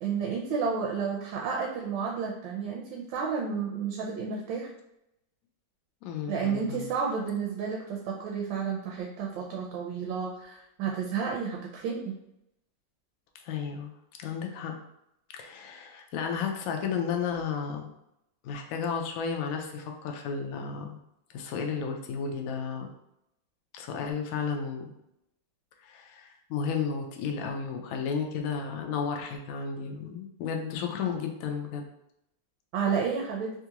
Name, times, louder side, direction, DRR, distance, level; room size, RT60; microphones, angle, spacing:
voice 1, 0.0-4.7 6.3-12.1 32.7-33.5, right 6 dB, 80° right, -1 dB, 1.3 m, -31 dB
voice 2, 6.0-6.9 13.4-13.9 14.2-14.7 15.3-17.9 18.4-21.0 21.3-22.9 23.7-24.9 25.8-31.8, left 6 dB, 90° left, 3 dB, 0.7 m, -33 dB
3.7 x 2.4 x 2.8 m, 0.82 s
omnidirectional pair, 2.0 m